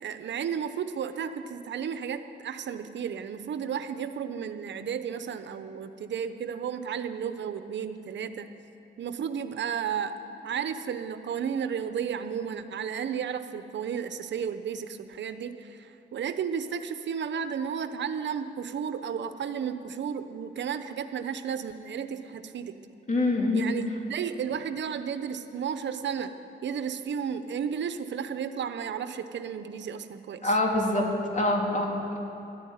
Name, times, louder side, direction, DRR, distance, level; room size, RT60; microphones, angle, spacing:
voice 1, 0.0-8.5 9.0-10.2 10.4-22.7 23.5-23.8 24.1-26.3 26.6-30.5, right 7 dB, 75° right, 10 dB, 0.8 m, -33 dB
voice 2, 23.1-23.7 30.4-31.1 31.3-32.2, left 2 dB, 40° left, 0 dB, 3.0 m, -25 dB
13.0 x 11.5 x 9.5 m, 3.0 s
cardioid pair, 80°, 19 cm